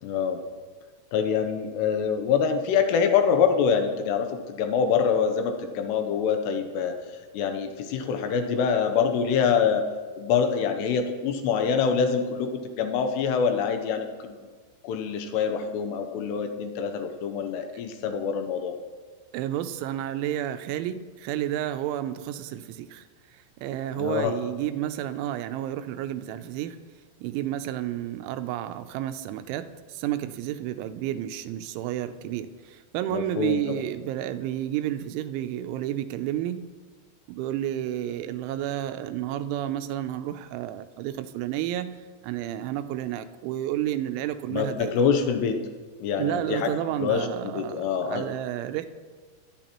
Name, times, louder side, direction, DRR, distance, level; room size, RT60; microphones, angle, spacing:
voice 1, 0.0-0.4 1.1-7.0 7.3-9.9 10.2-14.4 14.8-18.8 24.0-24.3 33.1-33.8 44.5-45.6 46.0-48.3, left 6 dB, 80° left, 6 dB, 2.7 m, -25 dB
voice 2, 19.3-23.1 23.3-26.8 27.2-36.6 37.3-41.9 42.2-45.0 46.2-48.9, right 12 dB, 90° right, 10 dB, 3.1 m, -31 dB
21.0 x 10.5 x 3.0 m, 1.4 s
omnidirectional pair, 5.3 m